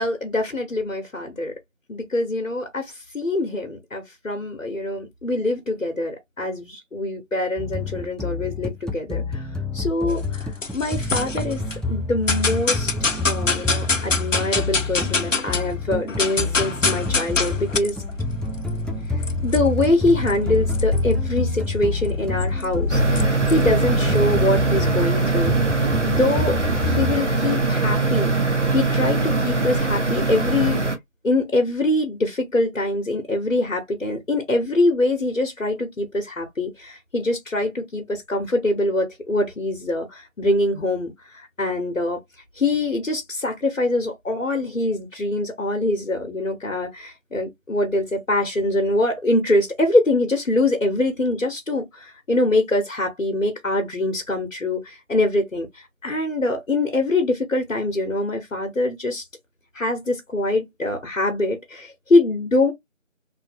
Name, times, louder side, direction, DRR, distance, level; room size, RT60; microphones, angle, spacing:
voice 1, 0.0-1.5 1.9-9.4 9.7-11.6 11.9-12.9 13.2-18.0 19.4-23.0 23.5-25.7 26.0-26.6 26.9-28.3 28.7-30.8 31.2-42.2 42.6-59.2 59.7-62.7, left 2 dB, 85° left, 1.0 m, -24 dB
sound 1, 7.6-27.2, left 3 dB, ahead, 0.4 m, -28 dB
sound 2, 10.1-11.8 12.3-15.7 16.0-24.5, left 3 dB, 70° left, 0.7 m, -26 dB
sound 3, 22.9-31.0, right 3 dB, 65° right, 0.8 m, -21 dB
2.7 x 2.6 x 2.5 m
figure-of-eight pair, 175°, 39 cm